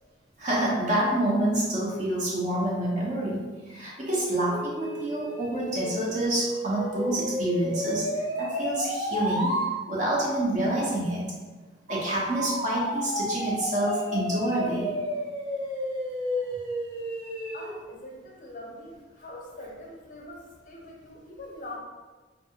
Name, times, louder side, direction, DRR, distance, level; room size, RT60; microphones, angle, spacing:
voice 1, 0.4-9.5 9.9-11.2 11.9-14.9, right 1 dB, 40° right, -5 dB, 0.6 m, -27 dB
sound 1, 4.5-9.7 11.9-17.7, equal, 85° right, 1.0 m, -32 dB
voice 2, 17.5-21.8, left 1 dB, 45° left, -1 dB, 0.5 m, -43 dB
2.6 x 2.5 x 2.7 m, 1.3 s
head